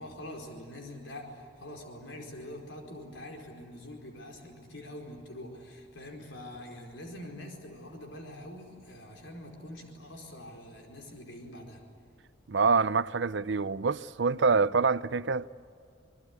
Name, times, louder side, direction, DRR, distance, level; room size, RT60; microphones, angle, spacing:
voice 1, 0.0-11.8, left 1 dB, 75° left, 4.6 m, -45 dB
voice 2, 12.5-15.5, right 4 dB, 70° right, 0.6 m, -26 dB
27.5 x 21.0 x 9.6 m
head